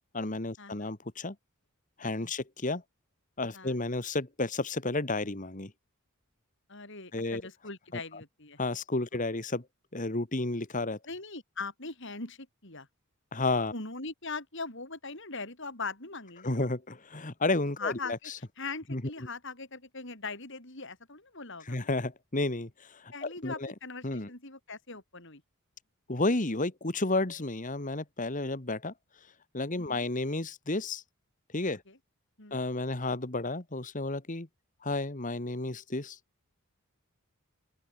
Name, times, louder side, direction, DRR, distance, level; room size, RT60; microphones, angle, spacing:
voice 1, 0.1-1.3 2.0-2.8 3.4-5.7 7.1-7.4 7.9-8.0 8.6-9.6 9.9-11.0 13.3-13.7 16.4-18.3 18.9-19.0 21.7-23.7 24.0-24.3 26.1-28.9 29.5-31.0 31.5-31.8 32.5-34.5 34.8-36.2, left 2 dB, 35° left, 1.7 m, -32 dB
voice 2, 6.7-8.6 11.1-12.9 13.7-16.6 17.8-18.3 18.6-21.8 23.1-25.4 29.7-30.1 31.9-32.0 32.4-32.6, left 4 dB, 60° left, 6.4 m, -41 dB
open air
head